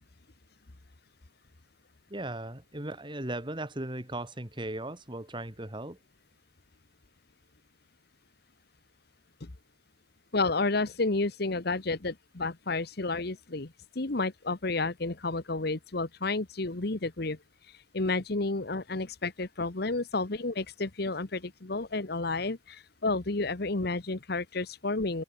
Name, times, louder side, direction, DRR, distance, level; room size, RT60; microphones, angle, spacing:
voice 1, 2.1-6.0, right 1 dB, 25° right, 2.4 m, -37 dB
voice 2, 10.3-17.4 17.9-25.2, left 3 dB, 55° left, 1.2 m, -31 dB
head